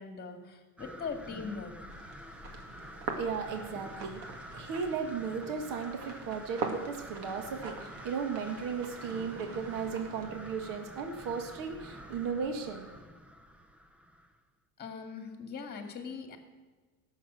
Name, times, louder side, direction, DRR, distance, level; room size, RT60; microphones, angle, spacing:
voice 1, 0.0-1.9 14.8-16.4, left 5 dB, 20° left, 4 dB, 2.0 m, -41 dB
sound 1, 0.8-14.4, equal, 5° right, 0.3 m, -48 dB
sound 2, 1.9-10.3, right 4 dB, 65° right, 2.3 m, -43 dB
voice 2, 2.8-13.0, right 6 dB, 45° right, 5 dB, 1.7 m, -36 dB
17.5 x 7.4 x 6.3 m, 1.3 s
supercardioid pair, 145°, 44 cm